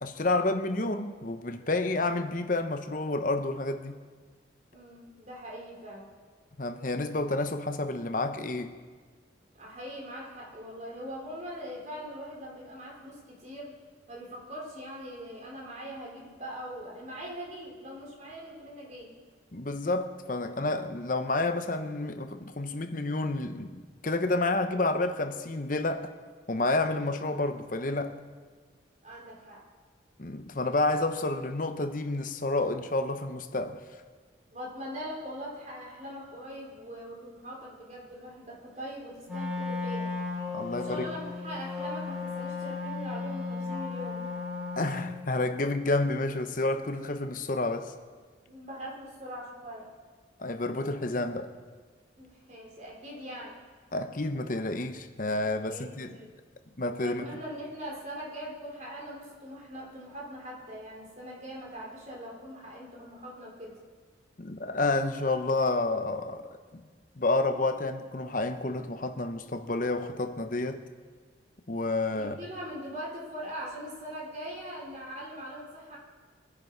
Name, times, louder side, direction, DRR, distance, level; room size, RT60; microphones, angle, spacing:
voice 1, 0.0-4.0 6.6-8.7 19.5-23.8 24.0-26.1 26.5-28.2 30.2-33.9 40.5-41.1 44.8-47.9 50.4-51.5 53.9-56.2 56.8-57.2 64.4-66.8 67.2-70.8 71.7-72.4, left 2 dB, 45° left, 0.9 m, -30 dB
voice 2, 4.7-6.1 9.5-13.8 14.1-19.1 29.0-29.6 34.5-40.1 40.7-44.3 48.5-49.9 52.2-53.6 55.6-56.3 57.0-63.8 72.1-76.0, equal, 40° right, 3.8 m, -41 dB
Wind instrument woodwind instrument, 39.2-45.2, left 4 dB, 5° right, 2.7 m, -35 dB
22.5 x 10.5 x 4.6 m
head